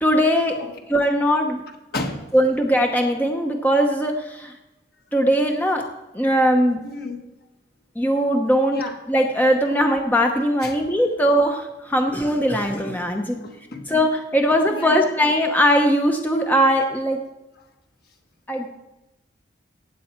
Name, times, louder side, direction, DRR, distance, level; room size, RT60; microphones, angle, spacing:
voice 1, 0.0-0.5 0.9-1.6 2.3-4.5 5.1-5.8 6.1-6.8 8.0-8.8 9.1-13.4 13.9-17.2 18.5-18.7, equal, 10° left, 3 dB, 0.8 m, -20 dB
voice 2, 1.9-2.3 6.8-7.2 8.7-8.9 10.6-10.7 13.3-13.9 14.7-15.1, left 2 dB, 55° left, 3 dB, 1.5 m, -31 dB
16.0 x 8.5 x 4.4 m, 0.97 s
head